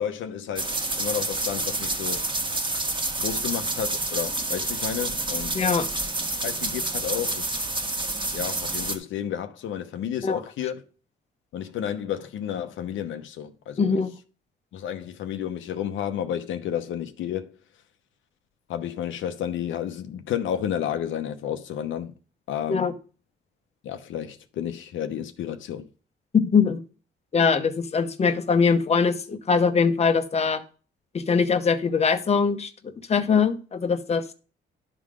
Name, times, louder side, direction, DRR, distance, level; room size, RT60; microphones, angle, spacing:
voice 1, 0.0-2.2 3.2-5.6 6.4-7.5 8.3-10.8 11.5-14.0 14.7-17.5 18.7-22.1 22.5-22.9 23.8-25.9, left 9 dB, 75° left, 0.8 m, -31 dB
sound 1, 0.6-9.0, right 2 dB, 25° right, 1.4 m, -28 dB
voice 2, 5.5-5.9 10.2-10.4 13.8-14.1 22.7-22.9 26.3-26.8 27.3-30.6 31.1-32.7 33.1-34.2, left 5 dB, 35° left, 0.9 m, -22 dB
11.0 x 3.8 x 5.0 m
cardioid pair, 90°, 20 cm